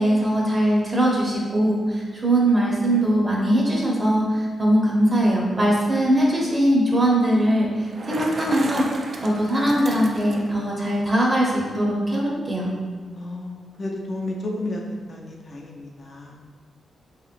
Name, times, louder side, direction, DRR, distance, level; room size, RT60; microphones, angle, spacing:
voice 1, 0.0-8.8 9.2-12.7, right 1 dB, 25° right, -3 dB, 0.7 m, -21 dB
Bicycle, 7.8-10.6, right 2 dB, 50° right, 0.3 m, -34 dB
voice 2, 13.1-14.8 15.1-16.4, left 2 dB, 40° left, -1 dB, 0.4 m, -32 dB
3.5 x 2.9 x 2.5 m, 1.5 s
cardioid pair, 105°, 0 cm